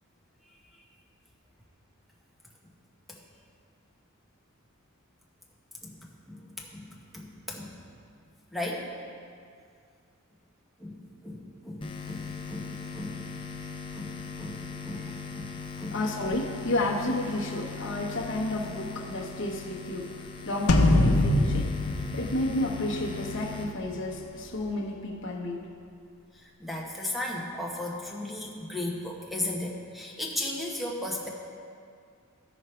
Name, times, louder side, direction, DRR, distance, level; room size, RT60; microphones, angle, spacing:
voice 1, 6.3-6.9 7.1-7.7 8.5-8.9 10.8-13.2 13.9-16.0 26.3-31.3, left 1 dB, ahead, -2 dB, 1.0 m, -36 dB
sound 1, 11.8-24.7, left 5 dB, 25° left, 0.6 m, -40 dB
voice 2, 15.9-25.7, left 1 dB, 55° left, -1 dB, 1.1 m, -31 dB
sound 2, 20.7-23.2, left 1 dB, 85° left, 0.8 m, -23 dB
15.0 x 5.0 x 4.4 m, 2.3 s
head